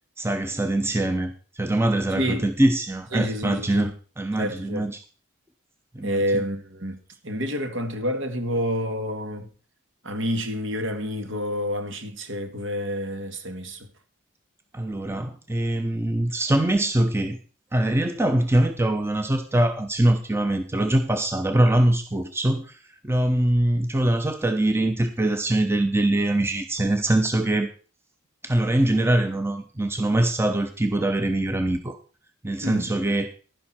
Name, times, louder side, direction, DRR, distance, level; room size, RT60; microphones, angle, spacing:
voice 1, 0.2-3.9 4.2-5.0 5.9-6.4 14.7-17.4 17.7-22.8 23.0-27.7 28.4-32.0 32.4-33.3, right 1 dB, 10° right, 0.8 m, -23 dB
voice 2, 2.2-2.5 3.1-3.9 4.4-4.8 6.0-7.0 7.2-9.5 10.0-13.9 32.6-32.9, equal, 65° right, 2.1 m, -28 dB
11.5 x 11.0 x 4.4 m
head